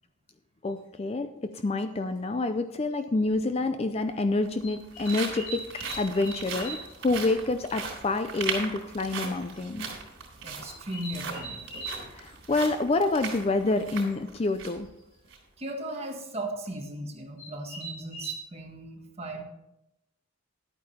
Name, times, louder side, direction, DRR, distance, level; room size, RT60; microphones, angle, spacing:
voice 1, 0.6-5.6 6.0-9.9 12.1-14.9, left 2 dB, 25° left, 9 dB, 0.4 m, -28 dB
sound 1, 0.7-0.8 2.2-2.3 3.0-3.2 4.6-6.9 7.2-7.4 7.7-7.8 8.1-8.2 8.4-8.5 9.4-9.6 10.6-12.0 14.1-14.2 14.5-14.8 16.7-16.8 17.4-18.4, right 2 dB, 75° left, 4.4 m, -40 dB
sound 2, 3.3-3.4 4.3-14.9 15.2-15.4 15.9-16.1, right 5 dB, 60° right, 3.5 m, -39 dB
voice 2, 10.4-11.6 15.6-19.4, right 1 dB, 30° right, 1 dB, 1.5 m, -37 dB
11.5 x 8.7 x 4.2 m, 0.88 s
head